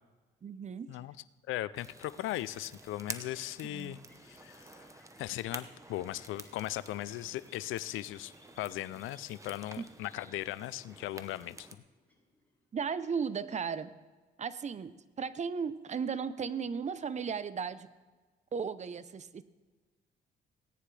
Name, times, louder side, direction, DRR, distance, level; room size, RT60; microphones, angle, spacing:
voice 1, 0.4-1.0 3.6-4.0 9.8-9.9 12.7-13.9 14.4-17.9 18.5-19.4, right 6 dB, 35° right, 14 dB, 0.6 m, -36 dB
voice 2, 1.5-8.3 8.6-11.7, left 14 dB, 85° left, 18 dB, 0.5 m, -38 dB
sound 1, 1.8-11.8, right 2 dB, 15° right, 0.9 m, -50 dB
sound 2, 2.5-12.9, left 2 dB, 10° left, 4.5 m, -66 dB
17.5 x 9.6 x 3.3 m, 1.3 s
cardioid pair, 90°, 20 cm